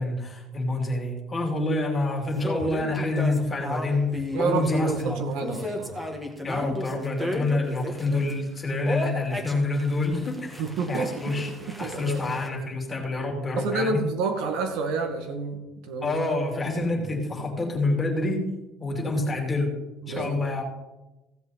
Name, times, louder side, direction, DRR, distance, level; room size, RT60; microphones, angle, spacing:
voice 1, 0.0-4.1 4.4-5.2 6.4-11.5 11.8-14.1 16.0-18.4 18.8-19.8 20.1-20.6, left 2 dB, 20° left, 1 dB, 2.7 m, -27 dB
sound 1, 2.4-8.3 8.8-12.5, left 1 dB, 5° right, 1.5 m, -33 dB
voice 2, 4.3-6.0 10.6-11.4 11.8-12.3 13.6-15.6 15.9-16.2 20.0-20.5, right 4 dB, 75° right, 5 dB, 2.0 m, -29 dB
15.5 x 7.8 x 4.1 m, 1.0 s
cardioid pair, 150°, 0 cm